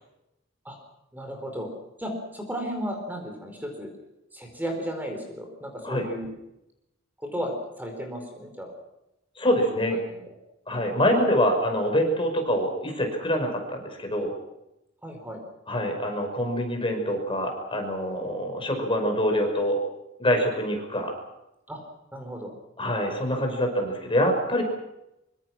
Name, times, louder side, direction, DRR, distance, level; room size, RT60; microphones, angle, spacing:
voice 1, 1.1-1.7 2.0-3.9 4.3-6.3 7.3-8.7 9.6-9.7 10.1-10.2 15.0-15.4 21.7-21.8 22.1-22.5, equal, 10° right, 3 dB, 4.6 m, -34 dB
voice 2, 9.4-10.0 10.7-14.3 15.7-19.8 20.2-21.1 22.8-24.6, equal, 25° left, 4 dB, 5.7 m, -25 dB
25.0 x 24.5 x 6.3 m, 0.89 s
head